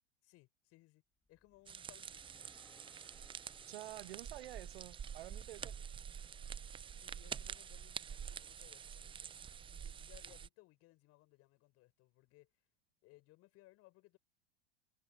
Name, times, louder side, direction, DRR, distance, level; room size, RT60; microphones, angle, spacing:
voice 1, 0.2-1.0 1.3-2.5 5.5-5.8 6.9-9.3 9.7-12.7 13.0-14.2, left 19 dB, 45° left, 7.1 m, -65 dB
sound 1, 1.2-5.5, left 2 dB, 5° left, 2.4 m, -70 dB
sound 2, 1.7-10.5, right 7 dB, 15° right, 0.5 m, -47 dB
voice 2, 3.7-5.7, right 16 dB, 65° right, 1.7 m, -49 dB
hypercardioid pair, 90°, 33 cm